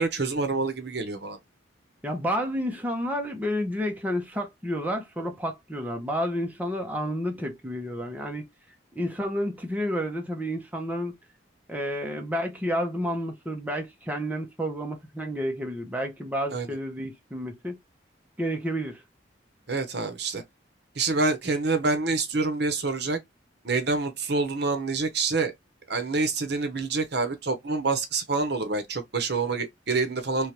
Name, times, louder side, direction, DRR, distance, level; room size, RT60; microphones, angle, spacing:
voice 1, 0.0-1.4 16.5-16.7 19.7-20.4 20.9-23.2 23.6-25.5 25.9-30.5, right 3 dB, 60° right, 1.0 m, -27 dB
voice 2, 2.0-8.5 8.9-11.1 11.7-17.8 18.4-19.0, equal, 10° right, 0.9 m, -30 dB
3.6 x 3.2 x 3.0 m
head